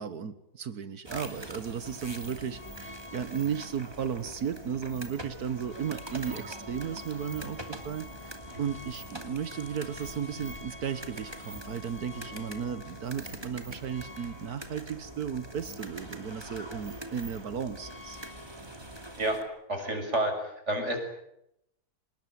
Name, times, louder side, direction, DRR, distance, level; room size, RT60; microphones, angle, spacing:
voice 1, 0.0-18.2, right 7 dB, 75° right, 12 dB, 1.8 m, -35 dB
sound 1, 1.0-19.4, equal, 15° right, 2.7 m, -43 dB
voice 2, 19.7-21.0, right 1 dB, 45° right, 4 dB, 6.8 m, -29 dB
27.0 x 20.0 x 9.5 m, 0.82 s
omnidirectional pair, 1.6 m